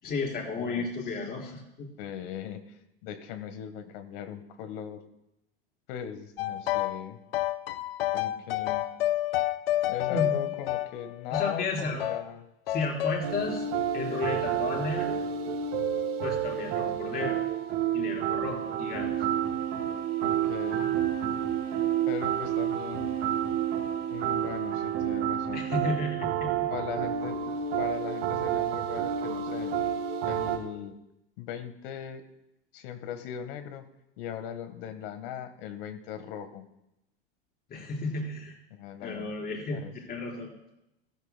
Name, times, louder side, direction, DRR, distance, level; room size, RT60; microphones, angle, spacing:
voice 1, 0.0-1.9 10.1-10.3 11.3-12.1 12.7-13.7 13.9-15.2 16.2-17.4 17.9-19.1 25.5-26.5 37.7-38.6 39.0-39.8 40.1-40.5, left 3 dB, 30° left, 0 dB, 4.0 m, -33 dB
voice 2, 0.5-0.9 2.0-5.0 5.9-7.2 8.1-8.9 9.9-12.4 20.2-21.0 22.1-23.1 24.1-25.9 26.7-27.4 27.7-29.7 30.2-31.0 31.4-32.2 32.7-33.9 34.2-36.7 38.7-39.4 39.7-39.9, left 9 dB, 65° left, 10 dB, 1.4 m, -39 dB
sound 1, 6.4-7.0 7.3-11.6 12.0-12.2 12.7-13.2, left 14 dB, 85° left, 0.6 m, -29 dB
sound 2, 13.2-30.6, right 9 dB, 60° right, 3.2 m, -29 dB
15.0 x 13.5 x 2.2 m, 0.87 s
hypercardioid pair, 105°, 29 cm